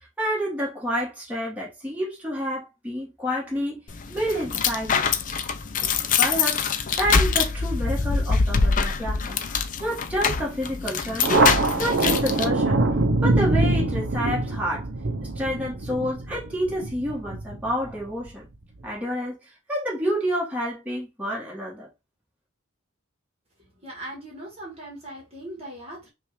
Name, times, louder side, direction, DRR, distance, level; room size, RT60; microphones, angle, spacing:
voice 1, 0.2-3.8 4.1-5.1 6.0-9.4 9.8-11.5 11.8-12.8 13.2-14.9 15.3-18.5 18.8-19.4 19.7-21.9, equal, 5° right, 1.7 m, -29 dB
sound 1, 3.9-12.5, left 5 dB, 40° left, 0.5 m, -24 dB
Thunder, 11.2-18.3, right 2 dB, 55° right, 0.7 m, -24 dB
voice 2, 23.8-26.1, right 1 dB, 30° right, 1.5 m, -39 dB
5.8 x 2.5 x 3.2 m
head